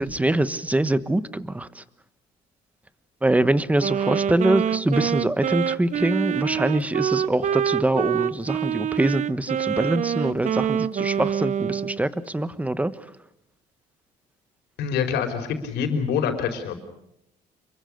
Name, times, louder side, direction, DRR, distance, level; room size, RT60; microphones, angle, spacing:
voice 1, 0.0-1.8 3.2-12.9, right 1 dB, 10° right, 13 dB, 1.3 m, -24 dB
Wind instrument woodwind instrument, 3.8-12.0, right 8 dB, 45° right, 0.9 m, -26 dB
voice 2, 14.8-16.8, left 7 dB, 80° left, 6 dB, 5.1 m, -25 dB
28.0 x 23.5 x 6.7 m, 0.82 s
cardioid pair, 110°, 17 cm